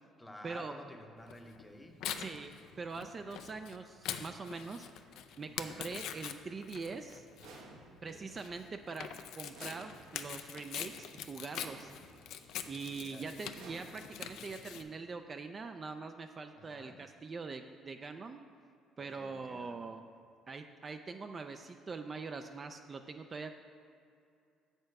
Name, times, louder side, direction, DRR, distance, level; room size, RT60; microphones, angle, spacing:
voice 1, 0.2-2.0 5.5-5.8 8.0-8.3 13.0-13.4 16.6-17.0 19.0-19.8, left 1 dB, 10° left, 4 dB, 0.7 m, -52 dB
Tearing, 1.3-14.8, left 9 dB, 75° left, 0.4 m, -44 dB
voice 2, 2.2-2.5 2.8-4.9 5.4-7.3 8.0-11.9 12.7-18.4 19.0-20.0 20.5-23.5, right 4 dB, 30° right, 6 dB, 0.4 m, -43 dB
sound 1, 7.4-8.3 9.5-10.4 11.5-12.3 13.5-14.4, right 3 dB, 85° right, 1.2 m, -53 dB
7.6 x 6.7 x 4.7 m, 2.5 s
cardioid pair, 120°, 0 cm